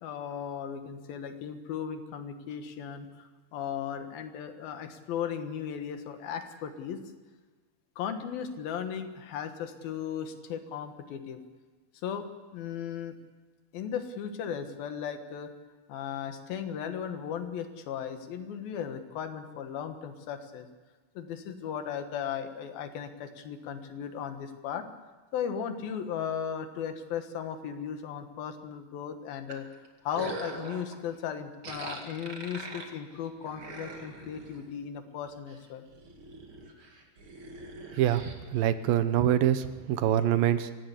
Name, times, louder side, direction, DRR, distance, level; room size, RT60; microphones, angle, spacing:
voice 1, 0.0-7.0 8.0-11.4 12.0-12.2 12.5-13.2 13.7-15.5 15.9-20.7 21.1-24.9 25.3-29.7 30.0-35.9, left 8 dB, 75° left, 7 dB, 3.2 m, -36 dB
sound 1, 29.5-31.0 31.6-34.7 35.1-35.6 35.9-38.4, right 3 dB, 40° right, 2.5 m, -43 dB
voice 2, 37.9-40.7, right 11 dB, 75° right, 11 dB, 2.6 m, -25 dB
23.5 x 17.0 x 8.3 m, 1.4 s
omnidirectional pair, 4.4 m